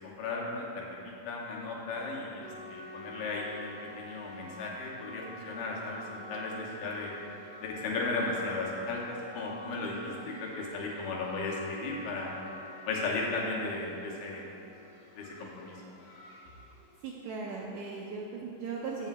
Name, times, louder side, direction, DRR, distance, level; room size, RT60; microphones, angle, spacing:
voice 1, 0.0-7.1 7.6-9.0 9.3-12.3 12.9-14.5 15.2-15.8, left 3 dB, 80° left, -2 dB, 2.8 m, -35 dB
sound 1, 2.4-17.6, left 1 dB, 55° left, 1.4 m, -48 dB
voice 2, 17.0-19.1, right 4 dB, 80° right, -2 dB, 1.7 m, -38 dB
15.0 x 7.0 x 2.2 m, 2.8 s
omnidirectional pair, 4.0 m